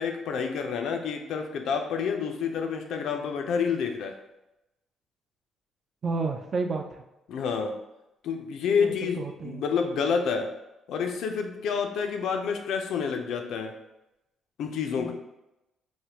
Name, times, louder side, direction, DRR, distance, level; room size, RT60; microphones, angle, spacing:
voice 1, 0.0-4.2 7.3-7.8 8.2-10.5 10.9-13.7 14.6-15.1, left 6 dB, 80° left, 4 dB, 0.4 m, -28 dB
voice 2, 6.0-6.8 8.7-9.6 15.0-15.1, right 3 dB, 45° right, 4 dB, 0.4 m, -31 dB
3.3 x 2.1 x 2.8 m, 0.93 s
cardioid pair, 90°, 0 cm